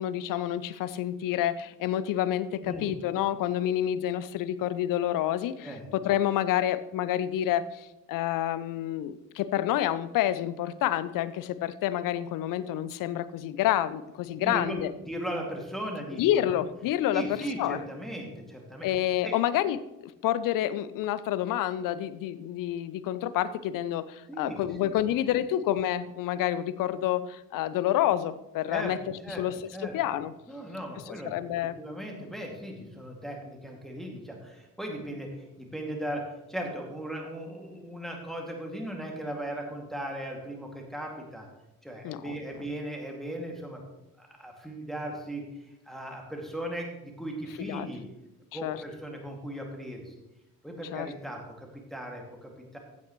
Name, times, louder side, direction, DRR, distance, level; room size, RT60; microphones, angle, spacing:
voice 1, 0.0-14.9 16.2-17.2 17.6-17.8 18.8-29.0 29.3-29.5 29.9-30.3 31.1-31.8 42.0-42.4 47.6-47.9 48.5-48.8 50.9-51.1, left 12 dB, 45° left, 16 dB, 0.7 m, -28 dB
voice 2, 2.6-2.9 5.6-5.9 14.3-14.8 15.0-16.5 17.1-18.9 19.2-19.3 24.3-25.0 25.3-25.4 28.7-29.0 29.2-29.5 29.7-30.0 30.5-31.3 31.8-41.5 41.8-43.8 44.2-48.0 48.5-50.1 50.6-52.8, right 1 dB, ahead, 0 dB, 2.3 m, -37 dB
15.0 x 8.4 x 3.1 m, 0.94 s
figure-of-eight pair, 45°, 46 cm